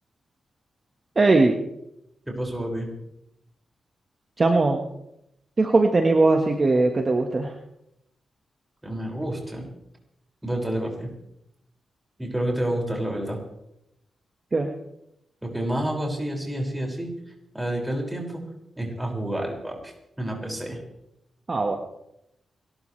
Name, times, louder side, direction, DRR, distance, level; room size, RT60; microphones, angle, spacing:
voice 1, 1.1-1.6 4.4-4.8 5.6-7.5 14.5-14.7 21.5-21.8, right 3 dB, 40° right, 3 dB, 1.6 m, -20 dB
voice 2, 2.3-2.9 8.8-9.7 10.4-11.1 12.2-13.4 15.4-17.1 17.5-18.4 18.8-20.8, right 1 dB, 10° right, -1 dB, 6.1 m, -29 dB
29.5 x 13.0 x 3.4 m, 0.82 s
cardioid pair, 70°, 0 cm